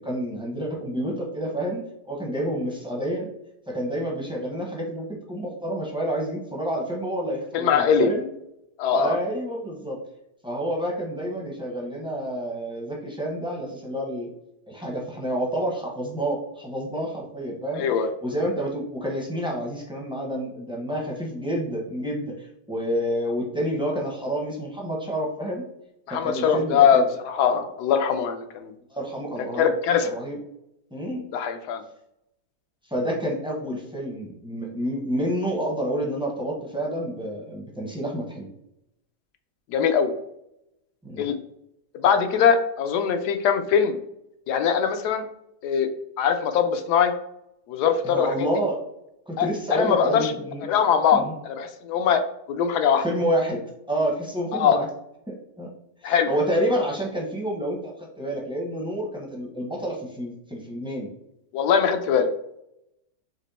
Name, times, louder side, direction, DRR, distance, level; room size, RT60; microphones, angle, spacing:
voice 1, 0.0-3.3 3.7-8.3 8.9-10.0 10.4-14.3 14.7-17.8 18.2-25.6 26.1-27.0 28.9-29.7 30.1-30.4 30.9-31.2 32.9-38.5 41.0-41.2 48.0-48.8 49.3-50.6 51.1-51.3 53.0-53.6 53.9-54.9 55.3-55.7 56.0-61.1, equal, 5° right, -2 dB, 0.4 m, -29 dB
voice 2, 7.5-8.1 8.8-9.2 17.8-18.1 26.1-28.7 29.6-30.1 31.3-31.8 39.7-40.1 41.2-41.4 41.9-44.0 44.5-45.2 45.6-45.9 46.2-47.1 47.7-48.3 49.4-50.3 50.7-52.2 52.5-53.0 54.5-54.8 56.0-56.3 61.5-62.3, left 7 dB, 85° left, 7 dB, 1.2 m, -21 dB
4.3 x 3.0 x 4.0 m, 0.80 s
omnidirectional pair, 1.7 m